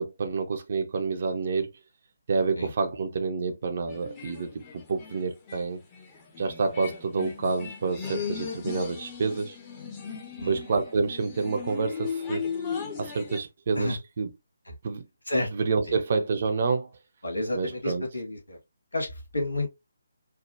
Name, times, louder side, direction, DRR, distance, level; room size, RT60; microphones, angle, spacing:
voice 1, 0.0-1.7 2.3-5.8 6.4-9.6 10.5-12.5 13.0-14.3 14.8-15.0 15.5-16.9 17.5-18.0, right 4 dB, 45° right, 0.8 m, -28 dB
sound 1, 3.9-13.4, left 6 dB, 20° left, 1.0 m, -37 dB
voice 2, 17.2-18.6 18.9-19.7, left 1 dB, 80° left, 2.4 m, -30 dB
4.7 x 2.3 x 2.6 m
figure-of-eight pair, 145°, 0 cm